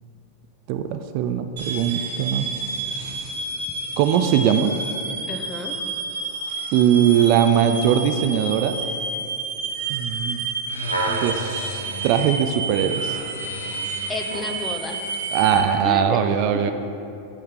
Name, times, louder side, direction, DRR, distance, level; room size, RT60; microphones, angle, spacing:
voice 1, 0.7-2.5 4.0-4.7 6.7-8.8 9.9-10.4 11.1-13.2 15.3-16.7, right 9 dB, 45° right, 8 dB, 0.3 m, -20 dB
sound 1, 1.6-15.6, right 3 dB, 60° right, 1.4 m, -30 dB
voice 2, 5.3-5.8 14.1-15.0 15.8-16.2, left 3 dB, 15° left, 4 dB, 0.6 m, -31 dB
sound 2, 10.7-14.5 15.2-15.3, right 1 dB, 90° left, 0.7 m, -31 dB
10.0 x 4.2 x 3.6 m, 2.7 s
figure-of-eight pair, 90°, 0 cm